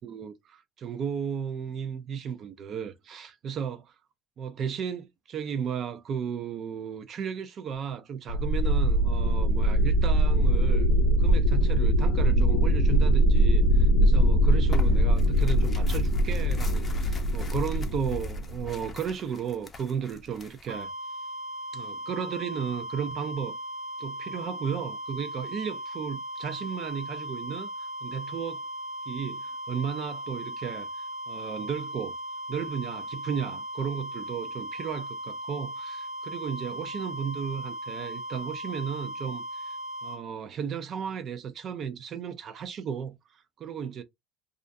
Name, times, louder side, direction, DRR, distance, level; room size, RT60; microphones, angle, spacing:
voice 1, 0.0-4.0 4.4-10.9 11.2-20.9 21.7-23.6 24.0-27.7 28.0-28.6 29.1-32.1 32.5-39.8 40.0-44.0, right 7 dB, 45° right, 0.4 m, -34 dB
sound 1, 8.3-18.9, right 1 dB, 75° left, 0.4 m, -22 dB
Tearing, 14.7-20.8, left 1 dB, 25° left, 0.5 m, -43 dB
sound 2, 20.7-40.2, equal, 85° right, 0.9 m, -37 dB
2.4 x 2.2 x 2.5 m
supercardioid pair, 115°, 0 cm